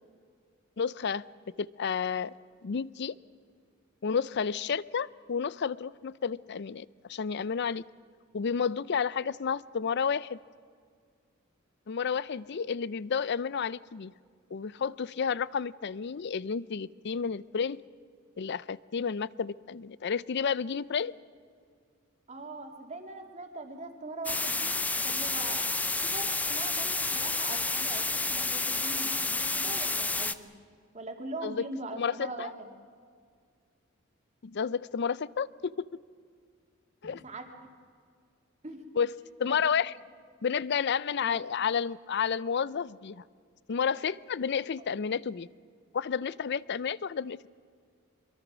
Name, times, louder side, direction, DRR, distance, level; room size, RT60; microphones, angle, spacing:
voice 1, 0.8-1.2 1.6-2.3 2.6-3.1 4.0-7.8 8.3-10.4 11.9-14.1 14.5-17.8 18.4-21.1 31.4-31.7 31.9-32.5 34.4-35.9 37.0-37.2 39.0-39.1 39.4-39.9 40.4-43.2 43.7-45.5 45.9-47.5, left 6 dB, 55° left, 20 dB, 0.5 m, -31 dB
voice 2, 22.3-24.7 25.0-30.5 30.9-32.7 37.2-37.7 38.6-38.8 39.4-39.6 41.2-41.4, right 2 dB, 35° right, 3 dB, 2.5 m, -41 dB
sound 1, 24.3-30.3, left 3 dB, 5° left, 0.5 m, -30 dB
24.0 x 22.5 x 6.2 m, 2.1 s
head